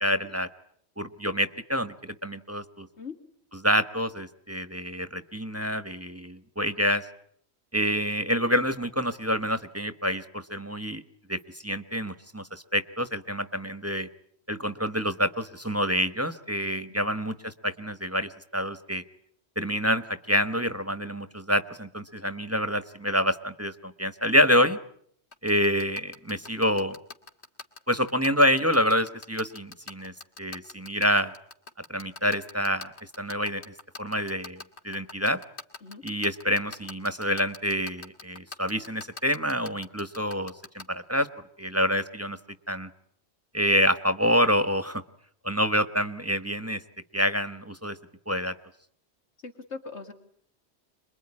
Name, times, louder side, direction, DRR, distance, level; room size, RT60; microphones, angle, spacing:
voice 1, 0.0-0.5 1.0-2.9 3.6-7.0 7.7-11.0 11.3-14.1 14.5-19.0 19.6-24.8 25.4-27.0 27.9-30.1 30.4-31.3 31.9-33.6 34.0-35.4 36.0-41.3 41.6-42.4 42.7-42.9 43.5-45.0 45.4-46.8 47.1-48.0 48.3-48.5, equal, 15° right, 11 dB, 1.1 m, -27 dB
sound 1, 25.3-40.8, left 3 dB, 75° left, 2.6 m, -41 dB
voice 2, 49.4-50.1, left 4 dB, 90° left, 6 dB, 2.5 m, -40 dB
27.0 x 22.0 x 9.8 m, 0.67 s
omnidirectional pair, 1.1 m